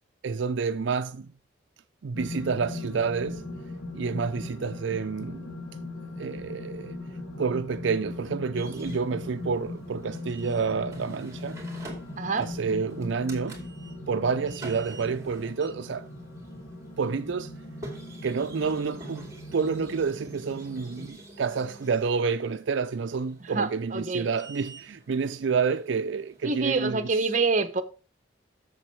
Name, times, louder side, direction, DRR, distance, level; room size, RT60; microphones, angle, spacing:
voice 1, 0.2-1.3 2.0-3.4 3.9-5.5 6.2-7.0 7.4-11.6 12.4-13.6 14.1-16.1 17.0-17.5 18.2-27.0, right 5 dB, 75° right, 0.4 m, -29 dB
sound 1, 2.1-21.1, left 2 dB, 60° left, 2.2 m, -40 dB
sound 2, 8.5-26.9, right 2 dB, 15° right, 2.5 m, -48 dB
voice 2, 23.4-24.3 26.4-27.8, right 4 dB, 40° right, 0.9 m, -26 dB
7.5 x 7.1 x 4.5 m
head